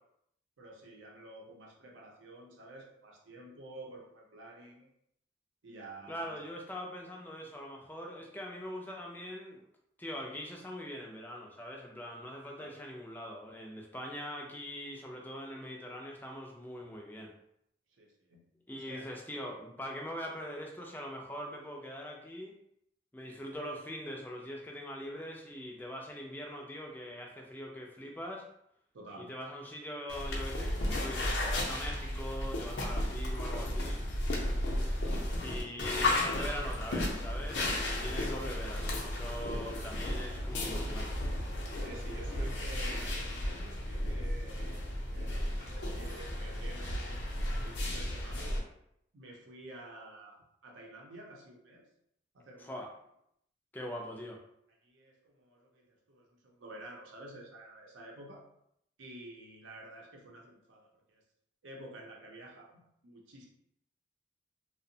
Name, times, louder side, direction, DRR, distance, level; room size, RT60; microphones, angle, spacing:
voice 1, 0.6-4.9 5.6-6.4 12.6-12.7 18.0-19.1 28.9-29.3 35.8-36.0 41.7-44.8 45.1-47.2 47.6-48.7 49.1-51.9 52.3-52.7 53.9-54.0 54.8-58.4 59.0-61.2 61.6-63.5, right 1 dB, 90° right, 0 dB, 0.6 m, -50 dB
voice 2, 6.1-9.6 10.0-17.3 18.7-22.6 23.1-28.5 29.2-34.0 35.4-41.1 52.6-52.9 53.7-54.4, equal, 10° left, 0 dB, 0.3 m, -42 dB
sound 1, 30.1-48.6, left 1 dB, 75° left, 0.6 m, -34 dB
2.7 x 2.0 x 2.6 m, 0.74 s
head